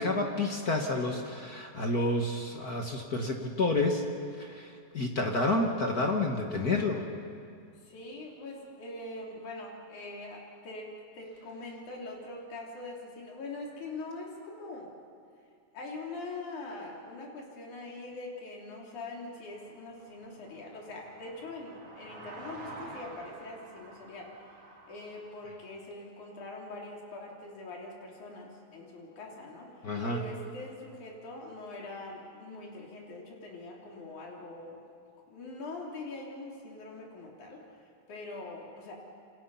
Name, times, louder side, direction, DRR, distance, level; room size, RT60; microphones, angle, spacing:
voice 1, 0.0-4.0 4.4-7.0 29.8-30.2, left 2 dB, 40° left, 2 dB, 1.6 m, -29 dB
voice 2, 7.8-14.9 15.7-24.6 24.9-34.8 35.3-38.9, left 2 dB, 70° left, -2 dB, 4.8 m, -43 dB
sound 1, 19.5-25.5, right 2 dB, 65° right, 4.3 m, -49 dB
28.5 x 26.0 x 5.7 m, 2.3 s
omnidirectional pair, 3.6 m